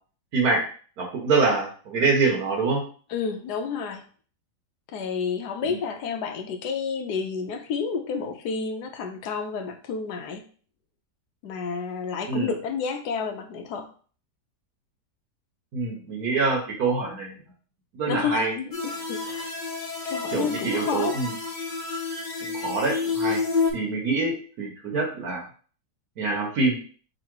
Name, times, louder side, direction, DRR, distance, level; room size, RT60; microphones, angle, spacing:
voice 1, 1.0-2.8 5.7-5.8 12.3-12.5 15.7-17.4 17.9-18.5 20.3-21.3 22.4-23.4 23.7-25.4 26.2-26.8, right 3 dB, 65° right, 0 dB, 1.5 m, -25 dB
voice 2, 3.1-4.0 4.9-10.4 11.4-13.9 18.1-19.5 20.1-21.2, left 6 dB, 75° left, 6 dB, 1.2 m, -30 dB
sound 1, 18.7-23.7, left 4 dB, 45° left, 1.2 m, -29 dB
3.9 x 2.9 x 4.6 m, 0.42 s
omnidirectional pair, 1.8 m